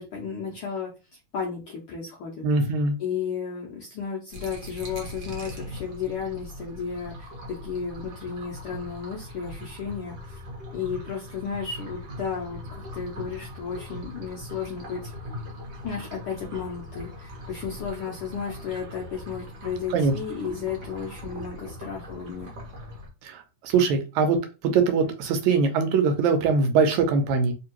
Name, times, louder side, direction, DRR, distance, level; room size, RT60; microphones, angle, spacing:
voice 1, 0.0-2.5 3.0-10.4 10.7-15.1 15.8-22.5, left 6 dB, 75° left, -3 dB, 1.3 m, -33 dB
voice 2, 2.4-3.0 19.9-20.1 23.2-24.4 24.6-27.5, right 4 dB, 85° right, 6 dB, 2.0 m, -22 dB
sound 1, 4.3-23.1, left 1 dB, 55° right, 1.2 m, -40 dB
4.4 x 2.9 x 2.9 m, 0.30 s
omnidirectional pair, 3.3 m